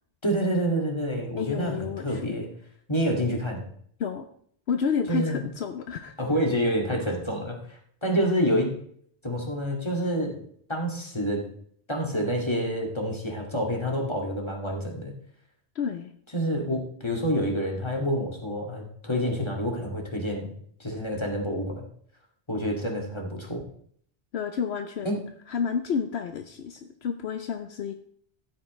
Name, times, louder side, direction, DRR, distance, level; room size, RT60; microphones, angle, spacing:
voice 1, 0.2-2.5 2.9-3.6 5.1-5.4 6.2-8.7 9.2-10.4 10.7-11.4 11.9-15.1 16.3-20.5 20.8-21.9 22.5-23.6 25.0-25.2, equal, 25° left, 0 dB, 2.2 m, -28 dB
voice 2, 1.4-2.3 4.0-4.3 4.7-6.1 15.7-16.1 24.3-25.2 25.5-27.9, left 6 dB, 75° left, 7 dB, 1.0 m, -30 dB
14.5 x 8.5 x 3.2 m, 0.62 s
omnidirectional pair, 1.1 m